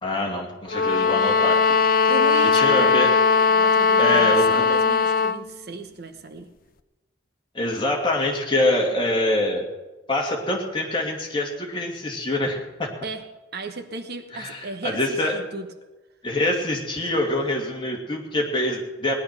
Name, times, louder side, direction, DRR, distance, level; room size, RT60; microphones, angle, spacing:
voice 1, 0.0-1.6 2.5-3.1 4.0-4.6 7.5-9.7 10.1-12.9 14.3-15.3 16.2-19.1, left 1 dB, 25° left, -1 dB, 2.3 m, -25 dB
sound 1, 0.7-5.4, left 5 dB, 45° left, 0.6 m, -19 dB
voice 2, 2.1-3.1 3.5-6.5 13.0-15.7, right 3 dB, 50° right, 6 dB, 1.0 m, -35 dB
18.0 x 11.0 x 5.9 m, 1.1 s
head